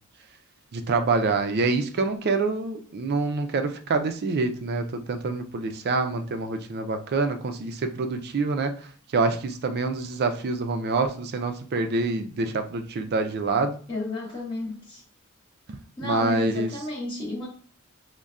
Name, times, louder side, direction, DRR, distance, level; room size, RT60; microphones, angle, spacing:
voice 1, 0.7-8.7 9.1-13.8 16.0-16.7, right 3 dB, 50° right, 8 dB, 0.4 m, -26 dB
voice 2, 13.9-15.0 16.0-17.5, left 2 dB, 25° left, -6 dB, 0.7 m, -32 dB
5.2 x 2.1 x 2.4 m, 0.42 s
head